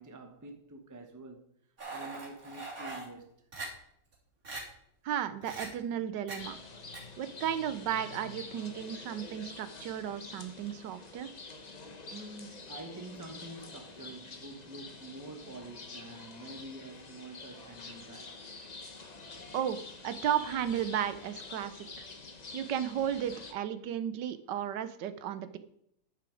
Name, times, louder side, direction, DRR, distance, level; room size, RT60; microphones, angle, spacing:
voice 1, 0.0-1.5 1.9-3.4 12.1-18.4, right 2 dB, 15° right, 0.8 m, -47 dB
sound 1, 1.8-3.0 3.5-3.7 4.1-4.2 4.4-4.6 5.4-5.7 6.3-6.4 6.9-7.0, right 3 dB, 50° right, 3.7 m, -41 dB
voice 2, 5.0-6.5 7.2-11.3 19.5-22.1 22.5-25.6, right 10 dB, 80° right, 1.3 m, -34 dB
sound 2, 6.4-23.5, left 3 dB, 35° left, 0.7 m, -47 dB
10.0 x 6.9 x 5.0 m
omnidirectional pair, 1.9 m